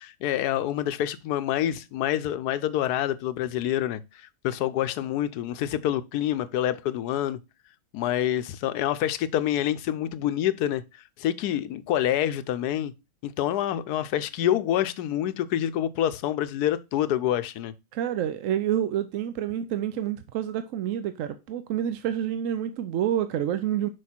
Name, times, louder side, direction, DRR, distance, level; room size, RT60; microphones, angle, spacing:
voice 1, 0.0-7.4 7.9-12.9 13.2-17.7, left 11 dB, 85° left, 1.2 m, -27 dB
voice 2, 17.9-23.9, right 10 dB, 65° right, 0.9 m, -28 dB
6.5 x 4.9 x 4.3 m
omnidirectional pair, 1.6 m